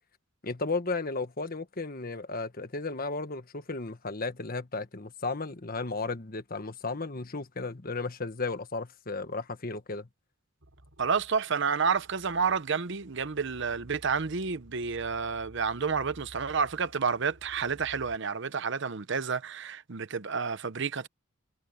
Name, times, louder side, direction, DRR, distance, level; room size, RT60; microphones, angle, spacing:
voice 1, 0.4-10.1, left 3 dB, 45° left, 1.4 m, -34 dB
sound 1, 10.6-18.2, equal, 90° right, 5.0 m, -54 dB
voice 2, 11.0-21.1, right 5 dB, 60° right, 0.8 m, -30 dB
head